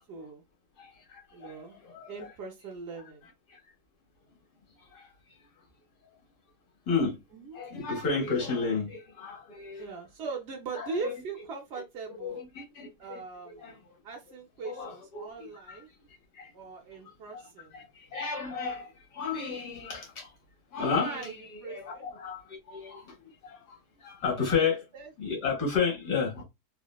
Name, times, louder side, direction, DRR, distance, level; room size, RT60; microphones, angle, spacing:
voice 1, 0.1-0.4 1.3-1.8 2.1-3.3 7.3-7.6 9.8-12.4 13.0-15.9 16.5-17.7 21.0-22.1 24.4-24.6 24.9-25.1, right 4 dB, 60° right, 0.7 m, -40 dB
voice 2, 0.8-2.3 3.5-3.6 4.8-5.4 6.9-7.2 7.5-9.9 10.8-11.2 12.1-13.8 14.6-15.8 16.3-16.5 17.3-20.3 20.7-21.4 21.7-24.8 25.2-26.4, left 5 dB, 80° left, 1.9 m, -33 dB
4.0 x 2.1 x 2.3 m
omnidirectional pair, 1.7 m